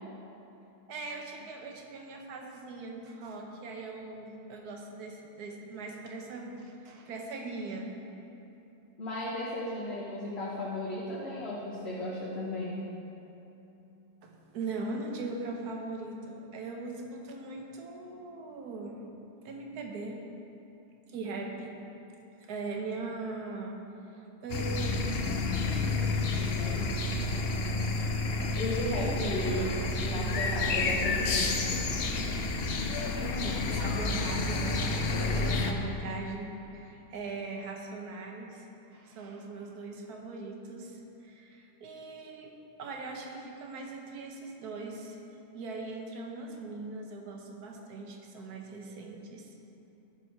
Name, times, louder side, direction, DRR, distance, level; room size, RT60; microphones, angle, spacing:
voice 1, 0.9-7.9 14.2-19.0 19.4-20.2 21.1-21.8 22.5-23.8 24.1-25.3 25.7-27.2 29.4-30.1 33.2-35.0 35.3-38.7 38.9-45.2 45.5-49.6, right 3 dB, 75° right, 1 dB, 1.5 m, -40 dB
voice 2, 9.0-12.7 28.6-29.7 30.0-31.6, left 2 dB, 45° left, -6 dB, 1.3 m, -34 dB
sound 1, 24.5-35.7, left 3 dB, 60° left, 0.6 m, -30 dB
13.5 x 4.7 x 4.7 m, 2.9 s
omnidirectional pair, 1.7 m